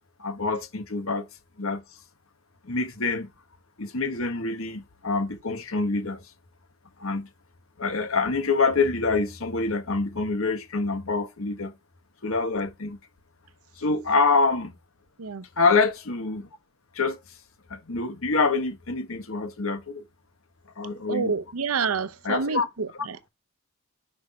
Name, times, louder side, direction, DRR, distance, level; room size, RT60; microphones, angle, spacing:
voice 1, 0.2-1.3 1.6-1.8 2.6-3.3 3.8-6.2 7.0-7.3 7.8-11.7 12.2-13.0 13.8-14.7 15.6-16.5 16.9-17.2 17.7-20.0 20.8-21.3 22.2-22.6, left 4 dB, 75° left, 1.5 m, -26 dB
voice 2, 21.1-23.3, right 5 dB, 85° right, 0.8 m, -28 dB
6.4 x 5.9 x 4.8 m
head